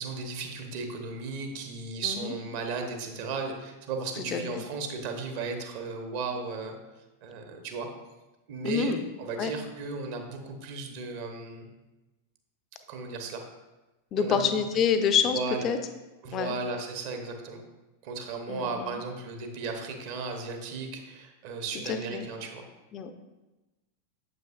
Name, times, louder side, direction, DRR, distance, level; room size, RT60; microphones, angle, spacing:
voice 1, 0.0-6.7 7.2-7.9 8.5-8.9 9.2-11.7 12.9-13.4 14.2-14.5 15.3-15.6 16.2-17.6 18.0-22.6, right 4 dB, 50° right, 4 dB, 0.9 m, -35 dB
voice 2, 2.0-2.3 4.2-4.6 8.6-9.0 9.4-9.5 14.1-15.4 15.6-15.8 16.3-16.5 18.5-18.9 21.7-22.3 22.9-23.1, left 7 dB, 30° left, 8 dB, 0.5 m, -27 dB
7.6 x 5.2 x 2.4 m, 1.1 s
figure-of-eight pair, 90°, 0 cm